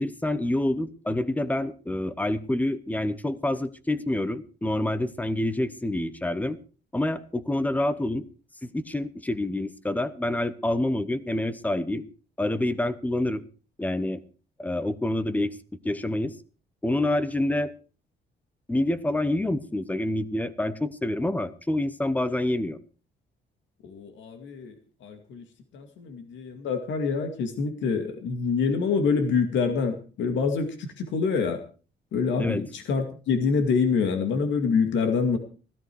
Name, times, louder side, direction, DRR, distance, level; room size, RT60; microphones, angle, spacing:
voice 1, 0.0-6.6 6.9-8.3 8.6-12.0 12.4-13.4 13.8-14.2 14.6-15.6 15.8-16.3 16.8-17.7 18.7-22.8 32.4-32.6, left 1 dB, 10° left, 15 dB, 0.8 m, -27 dB
voice 2, 23.8-24.7 25.0-25.4 25.7-31.6 32.1-35.4, left 5 dB, 85° left, 6 dB, 2.3 m, -26 dB
16.0 x 13.5 x 4.7 m, 0.37 s
cardioid pair, 165°, 19 cm